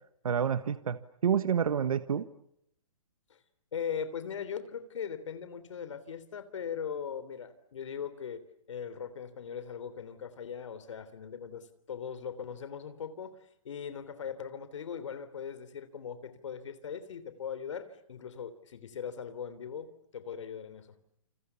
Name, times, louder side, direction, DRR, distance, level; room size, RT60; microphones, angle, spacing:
voice 1, 0.2-2.2, right 8 dB, 85° right, 12 dB, 1.4 m, -28 dB
voice 2, 3.7-8.4 8.7-13.4 13.7-20.9, left 7 dB, 60° left, 13 dB, 3.4 m, -40 dB
29.0 x 28.5 x 7.1 m, 0.73 s
hypercardioid pair, 175°, 17 cm